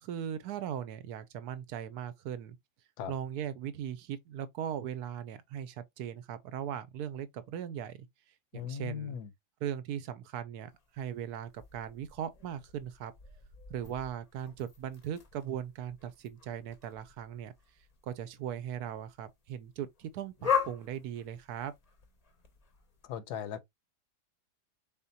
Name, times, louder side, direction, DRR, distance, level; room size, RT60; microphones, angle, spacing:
voice 1, 0.0-2.6 3.1-8.1 8.5-9.2 9.6-13.1 13.7-17.5 18.0-21.7, right 9 dB, 75° right, 1.0 m, -39 dB
voice 2, 8.5-9.3 23.0-23.6, left 8 dB, 75° left, 1.1 m, -38 dB
sound 1, 10.7-23.1, left 7 dB, 40° left, 0.5 m, -40 dB
4.2 x 3.6 x 2.7 m
omnidirectional pair, 1.8 m